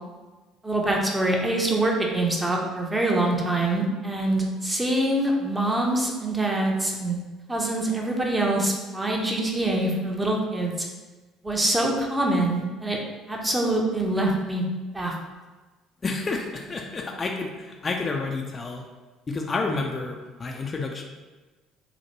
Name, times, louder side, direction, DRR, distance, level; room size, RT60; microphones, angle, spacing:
voice 1, 0.6-7.2 7.5-10.9 11.4-13.0 13.3-14.6 14.9-15.1, right 1 dB, 15° right, -1 dB, 0.6 m, -25 dB
voice 2, 16.0-18.8 19.3-21.0, left 3 dB, 30° left, 2 dB, 0.3 m, -30 dB
3.0 x 2.1 x 2.9 m, 1.2 s
figure-of-eight pair, 55°, 0 cm